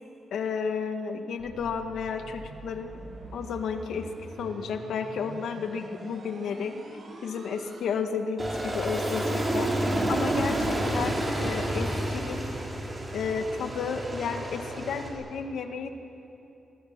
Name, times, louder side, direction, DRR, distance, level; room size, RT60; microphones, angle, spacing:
voice 1, 0.3-3.0 3.3-4.1 4.4-6.7 7.2-9.7 10.1-11.1 11.4-12.5 13.1-15.9, left 6 dB, 80° left, 6 dB, 2.0 m, -32 dB
sound 1, 1.4-7.8, right 2 dB, 50° right, 5.3 m, -45 dB
Aircraft, 8.4-15.1, right 1 dB, 15° right, 5.2 m, -29 dB
26.0 x 21.0 x 9.1 m, 2.9 s
wide cardioid pair, 145°, 0 cm